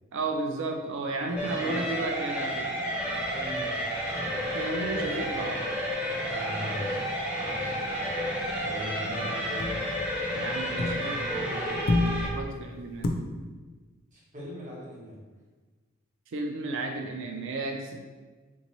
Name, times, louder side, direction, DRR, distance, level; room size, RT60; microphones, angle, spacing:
voice 1, 0.1-2.8 4.3-5.6 10.3-11.2 12.3-13.1 16.3-18.0, right 2 dB, 60° right, 3 dB, 0.3 m, -33 dB
voice 2, 1.3-1.9 3.3-3.8 4.1-4.3 6.3-7.1 7.4-7.8 8.6-9.7 10.7-11.9 14.1-15.1, equal, 35° right, -6 dB, 0.9 m, -40 dB
sound 1, 1.4-12.3, equal, 5° right, 0.5 m, -31 dB
sound 2, 3.0-6.7 6.9-7.3 7.6-11.4 11.7-13.1, left 2 dB, 50° left, 0.3 m, -33 dB
3.5 x 2.6 x 3.0 m, 1.3 s
head